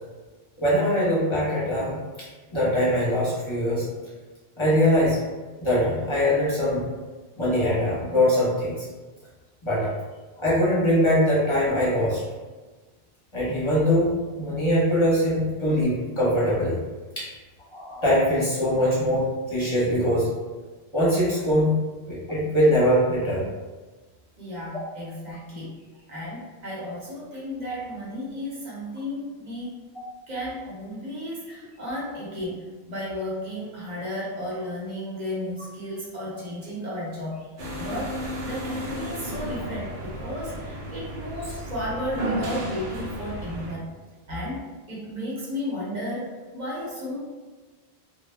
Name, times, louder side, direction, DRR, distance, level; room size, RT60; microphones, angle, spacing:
voice 1, 0.6-1.9 2.5-3.8 4.6-5.2 5.6-6.8 7.4-8.8 9.6-9.9 10.4-12.2 13.3-14.1 14.4-16.8 17.2-17.3 17.7-20.3 20.9-21.7 22.1-23.4 24.7-24.8 29.9-30.0, equal, 30° left, -8 dB, 0.8 m, -22 dB
voice 2, 24.4-25.8 26.1-29.8 30.3-37.5 37.8-38.2 38.4-43.9 44.3-47.2, left 1 dB, 45° right, -6 dB, 0.9 m, -33 dB
sound 1, 37.6-43.8, equal, 80° right, 0.9 m, -33 dB
2.1 x 2.0 x 3.2 m, 1.3 s
omnidirectional pair, 1.1 m